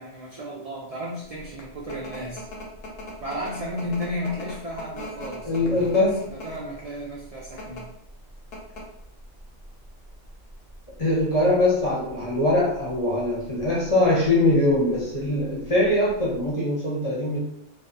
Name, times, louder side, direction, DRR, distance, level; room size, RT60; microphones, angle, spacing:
voice 1, 0.0-2.4 3.2-6.1 6.3-7.8, left 1 dB, 75° right, -4 dB, 0.3 m, -33 dB
sound 1, 1.3-16.5, left 1 dB, 75° left, 1.0 m, -41 dB
voice 2, 5.4-6.2 11.0-17.4, left 1 dB, 30° left, -6 dB, 0.6 m, -22 dB
2.5 x 2.3 x 2.5 m, 0.74 s
omnidirectional pair, 1.2 m